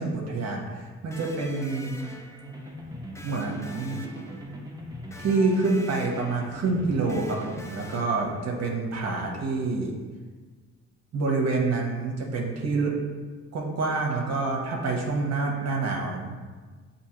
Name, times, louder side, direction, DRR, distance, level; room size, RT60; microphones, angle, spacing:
voice 1, 0.0-2.0 3.2-4.1 5.2-9.9 11.1-12.9 13.5-16.3, right 3 dB, 60° right, 0 dB, 0.8 m, -27 dB
Electric guitar, 1.1-8.8, left 1 dB, 10° left, 0.4 m, -47 dB
sound 1, 2.4-8.0, equal, 15° right, 0.8 m, -41 dB
6.9 x 2.7 x 2.8 m, 1.4 s
cardioid pair, 90°, 30 cm